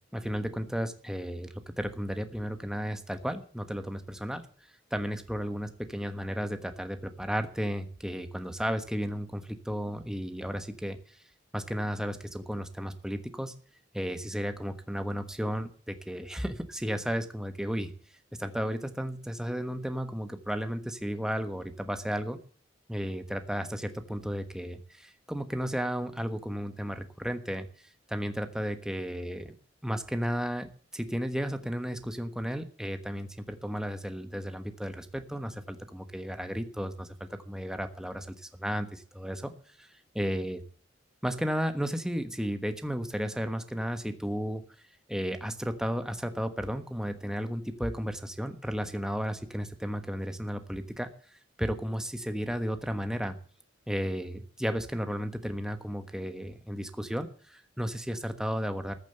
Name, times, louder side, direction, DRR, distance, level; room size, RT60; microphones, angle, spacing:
voice 1, 0.1-4.5 4.9-11.2 11.5-13.5 13.9-17.9 18.4-22.4 22.9-27.7 28.1-29.5 29.8-39.5 39.8-39.9 40.1-40.6 41.2-44.6 45.1-53.4 53.9-58.9, equal, 5° right, 8 dB, 1.3 m, -33 dB
14.5 x 7.4 x 7.8 m, 0.42 s
head